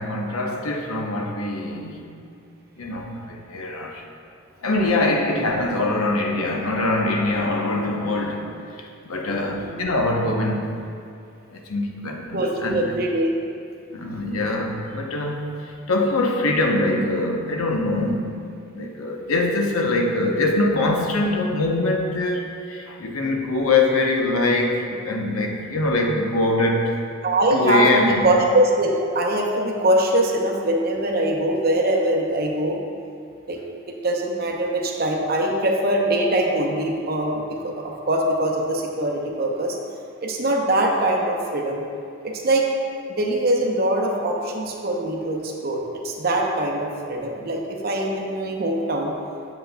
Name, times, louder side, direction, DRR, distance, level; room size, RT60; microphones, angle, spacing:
voice 1, 0.0-2.0 2.8-4.0 4.6-8.5 8.7-10.8 11.5-12.9 13.9-18.3 18.7-27.0 27.5-28.3, left 2 dB, 80° left, 1 dB, 0.7 m, -23 dB
voice 2, 12.3-13.3 18.0-18.1 27.2-32.8 33.5-33.6 33.9-39.8 40.2-41.8 42.2-42.7 43.1-49.1, right 1 dB, 45° right, 0 dB, 0.7 m, -22 dB
7.9 x 7.1 x 2.2 m, 2.4 s
head